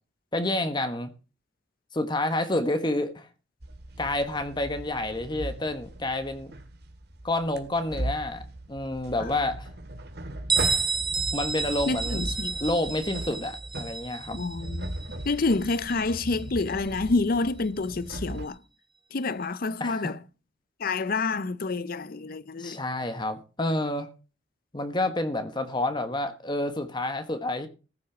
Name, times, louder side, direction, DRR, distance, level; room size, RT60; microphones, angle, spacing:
voice 1, 0.3-1.1 1.9-3.3 4.0-6.5 7.2-8.4 8.7-9.7 11.3-12.2 12.6-14.4 19.8-20.1 22.6-24.1 24.7-27.7, left 1 dB, 25° left, 1.2 m, -29 dB
sound 1, 3.6-18.5, right 1 dB, 60° right, 2.0 m, -38 dB
Bell, 10.5-16.0, right 4 dB, 25° right, 1.1 m, -30 dB
voice 2, 11.9-12.5 14.3-14.9 15.2-18.6 19.1-20.2 20.8-22.8, left 3 dB, 50° left, 0.6 m, -28 dB
14.5 x 6.2 x 7.2 m
head